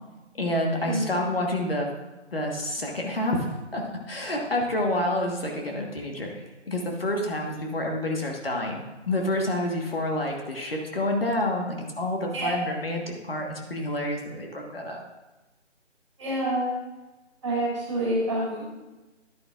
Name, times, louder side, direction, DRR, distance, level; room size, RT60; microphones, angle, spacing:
voice 1, 0.4-1.9 2.3-3.8 4.1-6.3 6.7-15.0, left 1 dB, 50° left, 1 dB, 1.5 m, -28 dB
voice 2, 12.3-12.7 16.2-16.7 17.4-18.7, right 1 dB, 25° right, -6 dB, 2.3 m, -27 dB
11.0 x 9.8 x 2.5 m, 1.1 s
figure-of-eight pair, 170°, 36 cm